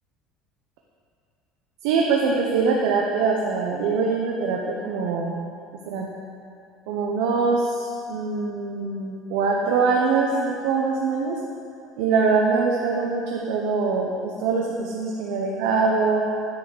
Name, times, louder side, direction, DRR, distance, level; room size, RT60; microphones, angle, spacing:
voice 1, 1.8-5.4 5.9-6.1 6.9-11.4 12.0-16.2, right 4 dB, 80° right, -1 dB, 0.9 m, -23 dB
9.6 x 4.9 x 7.7 m, 2.6 s
supercardioid pair, 100°, 0 cm